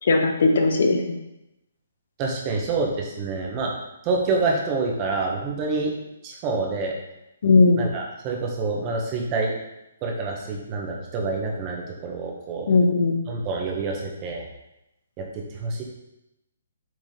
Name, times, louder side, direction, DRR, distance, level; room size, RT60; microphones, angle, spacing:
voice 1, 0.0-1.1 7.4-7.8 12.7-13.2, left 3 dB, 50° left, 3 dB, 1.2 m, -18 dB
voice 2, 2.2-3.7 4.0-5.9 6.2-6.9 7.8-9.5 10.0-12.7 13.3-14.5 15.2-15.8, right 3 dB, 25° right, 0 dB, 1.5 m, -27 dB
7.8 x 4.9 x 4.0 m, 0.90 s
figure-of-eight pair, 130°, 0 cm